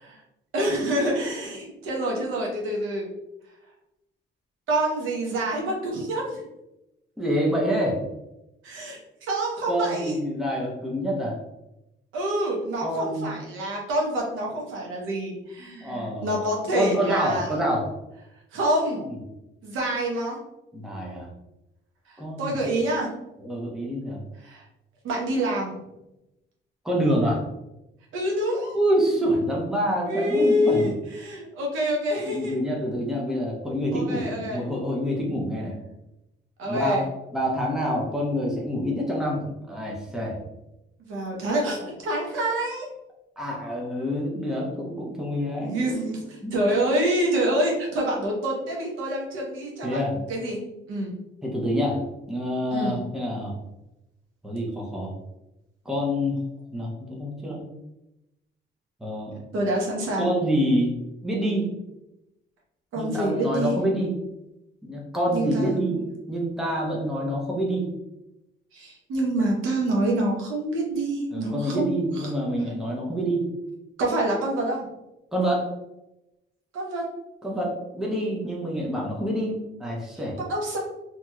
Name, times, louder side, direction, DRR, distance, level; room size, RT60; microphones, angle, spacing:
voice 1, 0.5-3.1 4.7-6.4 8.6-10.1 12.1-17.5 18.5-19.0 19.6-20.4 22.4-23.1 24.4-24.6 25.0-25.7 28.1-28.8 30.1-30.9 31.2-32.6 33.9-34.6 36.6-37.0 41.0-42.9 45.6-50.6 50.9-51.1 52.7-52.9 59.5-60.3 62.9-63.8 65.3-65.9 68.7-72.3 74.0-74.8 76.7-77.1 80.5-80.8, right 1 dB, 85° right, -1 dB, 0.9 m, -26 dB
voice 2, 7.2-8.0 9.7-11.4 12.8-13.3 15.8-16.4 16.7-17.9 19.1-19.2 20.7-21.3 22.2-22.6 23.4-24.2 26.8-27.4 28.7-30.9 32.2-35.7 36.6-37.0 37.3-40.4 43.4-45.8 46.4-46.5 49.8-50.2 51.4-52.0 52.3-53.5 54.4-55.1 55.8-56.3 56.7-57.6 59.0-59.4 60.2-60.9 61.2-61.7 63.0-64.2 64.8-67.9 71.3-73.5 75.3-75.7 77.4-80.4, equal, ahead, -3 dB, 0.8 m, -27 dB
2.9 x 2.8 x 2.3 m, 0.91 s
cardioid pair, 90°, 20 cm